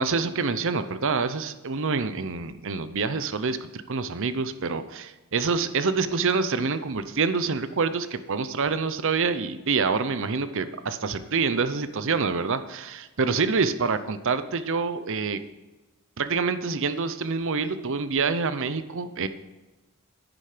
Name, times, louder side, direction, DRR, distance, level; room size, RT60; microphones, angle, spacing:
voice 1, 0.0-15.4 16.2-19.3, right 4 dB, 60° right, 12 dB, 0.7 m, -26 dB
10.0 x 10.0 x 5.0 m, 1.1 s
head